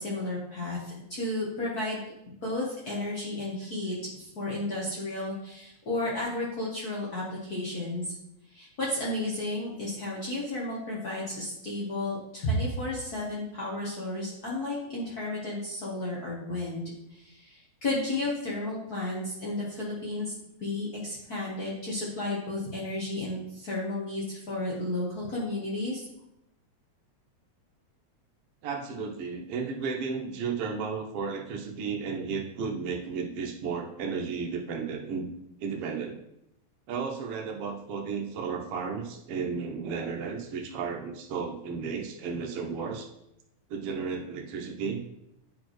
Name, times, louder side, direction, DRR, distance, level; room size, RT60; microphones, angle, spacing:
voice 1, 0.0-2.0 2.4-8.1 8.5-26.1, left 1 dB, 75° left, -5 dB, 0.8 m, -33 dB
voice 2, 28.6-35.3 35.6-36.2 36.9-43.1 43.7-45.0, right 5 dB, 70° right, 1 dB, 1.5 m, -33 dB
10.5 x 4.2 x 3.0 m, 0.84 s
omnidirectional pair, 3.4 m